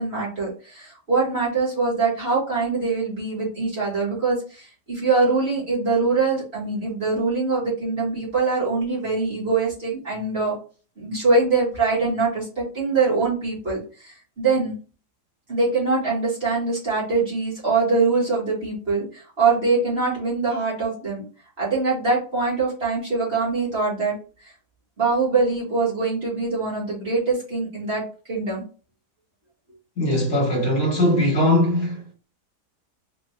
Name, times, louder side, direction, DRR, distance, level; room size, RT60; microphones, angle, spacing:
voice 1, 0.0-10.6 11.0-14.8 15.5-21.2 21.6-24.2 24.4-24.5 25.0-28.0 28.3-28.6, right 4 dB, 35° right, 2.2 m, -23 dB
voice 2, 30.0-32.1, left 1 dB, 55° left, 1.8 m, -20 dB
4.4 x 2.9 x 2.7 m
omnidirectional pair, 1.8 m